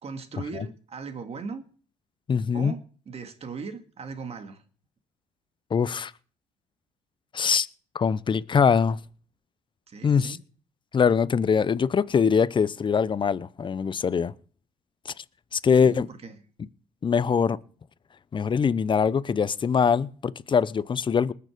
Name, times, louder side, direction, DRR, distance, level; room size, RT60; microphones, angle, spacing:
voice 1, 0.0-1.6 2.5-2.8 3.1-4.6 9.9-10.4 15.8-16.3, right 4 dB, 45° right, 2.1 m, -38 dB
voice 2, 2.3-2.7 5.7-6.1 7.3-7.7 7.9-9.0 10.0-10.4 10.9-14.3 15.0-15.1 15.5-16.1 17.0-17.6 18.3-21.3, left 6 dB, 30° left, 0.7 m, -23 dB
20.0 x 6.8 x 5.1 m
supercardioid pair, 75°, 15 cm